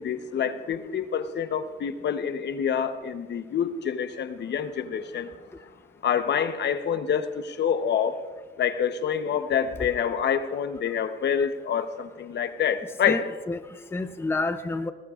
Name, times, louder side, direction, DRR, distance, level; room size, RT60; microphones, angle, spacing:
voice 1, 0.0-5.3 6.0-8.2 8.6-13.2, left 8 dB, 60° left, 10 dB, 0.9 m, -27 dB
voice 2, 13.1-14.9, left 3 dB, 10° left, 10 dB, 0.6 m, -30 dB
20.0 x 19.5 x 2.5 m, 1.5 s
cardioid pair, 90°, 20 cm